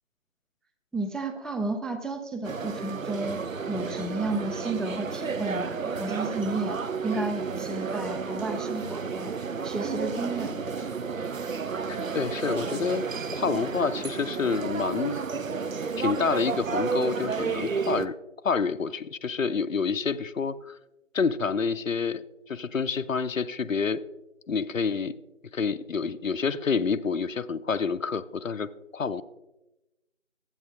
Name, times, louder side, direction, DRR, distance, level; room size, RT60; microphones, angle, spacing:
voice 1, 0.9-3.4 3.7-6.8 7.0-9.3 9.6-10.6, right 2 dB, ahead, 6 dB, 0.4 m, -32 dB
sound 1, 2.4-18.1, right 5 dB, 90° right, 0.6 m, -32 dB
voice 2, 11.9-13.1 13.3-15.1 16.0-18.1 18.4-20.7 21.1-24.0 24.5-25.1 25.5-29.2, left 5 dB, 85° left, 14 dB, 0.6 m, -28 dB
12.5 x 8.9 x 2.4 m, 0.97 s
figure-of-eight pair, 175°, 39 cm